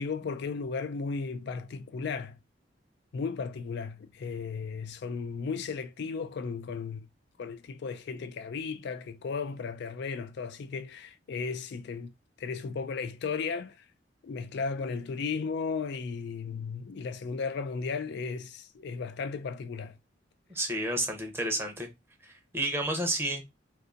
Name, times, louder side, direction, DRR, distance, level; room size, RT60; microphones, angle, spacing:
voice 1, 0.0-2.4 3.1-7.1 7.4-12.1 12.4-13.8 14.2-20.0, left 5 dB, 60° left, 0.4 m, -35 dB
voice 2, 20.5-21.9 22.2-23.4, right 1 dB, 15° right, 0.8 m, -31 dB
2.6 x 2.6 x 3.7 m
head